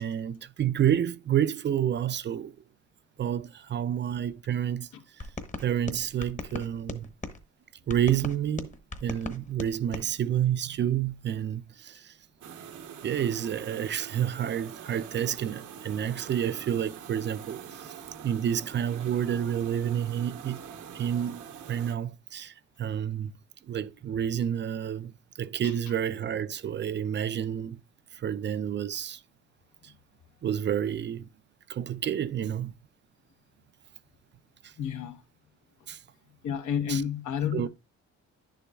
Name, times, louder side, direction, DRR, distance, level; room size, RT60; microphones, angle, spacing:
voice 1, 0.0-2.5 3.2-4.9 5.6-7.1 7.9-8.7 9.0-12.1 13.0-17.9 18.2-20.6 20.9-23.3 23.7-27.8 28.1-29.2 29.8-29.9 30.4-31.3 31.7-32.7 34.6-34.7 35.9-36.0 36.9-37.0 37.5-37.7, right 9 dB, 40° right, 0.4 m, -29 dB
sound 1, 5.2-7.4 7.9-10.1, left 3 dB, 25° left, 1.0 m, -39 dB
sound 2, 12.4-21.9, right 8 dB, 85° right, 0.9 m, -44 dB
voice 2, 34.8-35.2 36.4-37.7, left 8 dB, 75° left, 1.0 m, -30 dB
10.5 x 6.9 x 2.3 m
cardioid pair, 90°, 30 cm